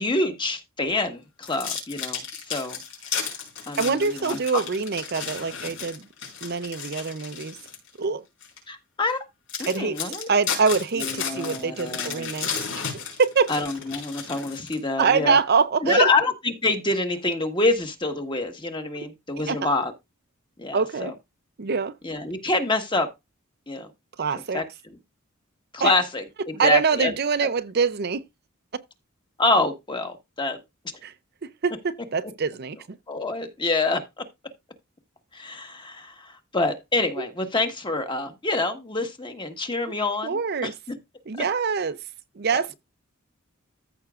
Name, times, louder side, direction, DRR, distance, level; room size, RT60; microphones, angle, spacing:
voice 1, 0.0-2.8 3.1-3.2 3.7-4.6 8.7-9.2 9.6-10.3 11.0-12.3 13.5-15.4 15.8-19.9 20.6-21.1 22.0-23.1 23.7-23.9 24.5-24.6 25.7-27.1 27.4-27.5 29.4-30.6 33.1-34.0 35.3-40.7 41.4-41.5 42.5-42.6, left 2 dB, 20° left, 1.3 m, -26 dB
sound 1, 1.4-7.9 8.4-8.6 9.1-9.2 9.5-15.0, left 6 dB, 65° left, 4.8 m, -33 dB
voice 2, 3.8-6.0 6.4-7.6 8.0-8.2 9.7-10.0 10.3-12.5 12.9-13.5 15.0-16.1 19.5-19.7 20.7-21.1 21.6-21.9 24.2-24.6 25.8-25.9 26.6-28.2 31.0-31.1 31.4-33.0 37.2-37.3 40.2-40.7 41.3-42.0 42.4-42.7, right 5 dB, 50° right, 0.5 m, -24 dB
14.5 x 5.9 x 2.4 m
head